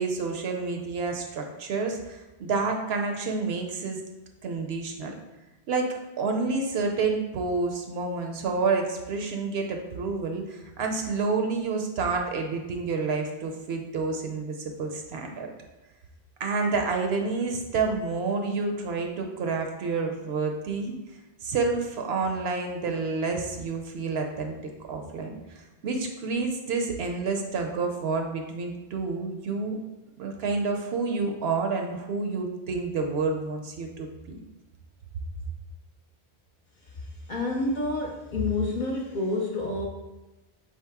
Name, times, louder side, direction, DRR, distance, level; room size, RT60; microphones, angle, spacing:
voice 1, 0.0-4.0 4.4-5.1 5.7-5.9 6.2-15.5 16.4-20.9 21.4-29.8 30.2-34.4, right 4 dB, 75° right, 3 dB, 0.8 m, -29 dB
voice 2, 36.9-39.9, left 2 dB, 50° left, -2 dB, 0.7 m, -29 dB
4.9 x 2.9 x 3.5 m, 1.1 s
omnidirectional pair, 1.1 m